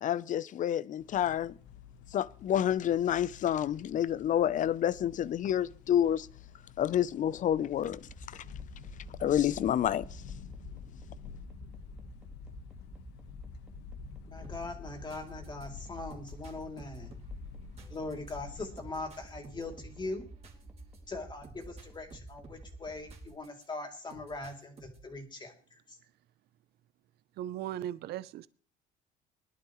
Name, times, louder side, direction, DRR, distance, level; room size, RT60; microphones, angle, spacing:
voice 1, 0.0-1.5 2.1-6.3 6.8-8.0 9.2-10.0, left 10 dB, 50° left, 0.6 m, -28 dB
sound 1, 1.0-18.7, left 6 dB, 85° left, 1.3 m, -49 dB
sound 2, 7.9-23.3, right 2 dB, 5° right, 1.7 m, -51 dB
voice 2, 14.3-17.1 17.9-20.3 21.1-25.8, left 2 dB, 25° left, 2.9 m, -41 dB
sound 3, 14.4-23.7 24.1-25.2, right 3 dB, 35° right, 2.9 m, -56 dB
voice 3, 27.4-28.5, right 12 dB, 70° right, 0.6 m, -37 dB
21.5 x 11.5 x 3.1 m
cardioid pair, 110°, 17 cm